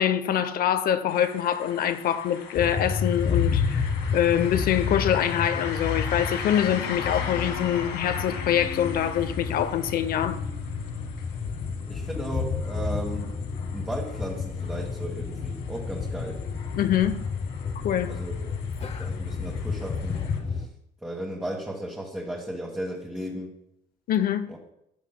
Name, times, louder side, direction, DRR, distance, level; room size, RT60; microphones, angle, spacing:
voice 1, 0.0-10.4 16.8-17.2 17.8-18.1 24.1-24.5, left 10 dB, 60° left, 0.7 m, -25 dB
sound 1, 1.1-20.4, left 6 dB, 80° left, 1.6 m, -41 dB
sound 2, 2.6-20.7, left 5 dB, 40° left, 0.9 m, -31 dB
voice 2, 11.9-13.4 13.7-16.4 18.1-18.3 19.0-20.7 21.0-23.6 24.5-24.6, right 1 dB, 5° right, 1.5 m, -35 dB
13.5 x 8.2 x 2.2 m
cardioid pair, 110°, 17 cm